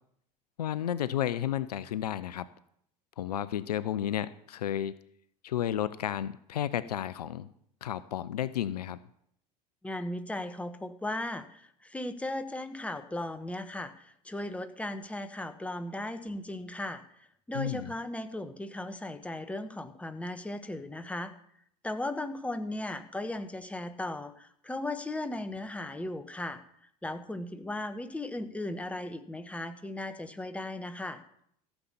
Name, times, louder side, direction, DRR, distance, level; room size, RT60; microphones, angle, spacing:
voice 1, 0.6-2.5 3.2-5.0 5.4-7.5 7.8-9.0 17.5-17.9, left 11 dB, 75° left, 17 dB, 0.5 m, -32 dB
voice 2, 9.8-21.3 21.8-31.2, left 1 dB, 5° left, 9 dB, 1.2 m, -37 dB
15.0 x 7.2 x 7.0 m, 0.69 s
figure-of-eight pair, 75°, 20 cm